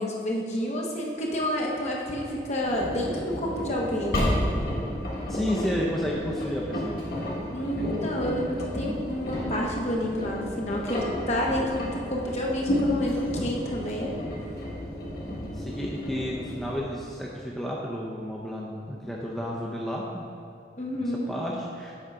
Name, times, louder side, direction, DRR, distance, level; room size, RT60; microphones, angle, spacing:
voice 1, 0.0-4.4 7.5-14.1 20.8-21.3, equal, 40° left, -2 dB, 1.0 m, -29 dB
Engine, 2.6-16.8, left 1 dB, 55° left, 1.7 m, -32 dB
voice 2, 5.3-7.0 7.8-8.0 15.5-20.2 21.0-21.9, equal, ahead, -4 dB, 0.5 m, -32 dB
8.2 x 3.8 x 5.6 m, 2.6 s
head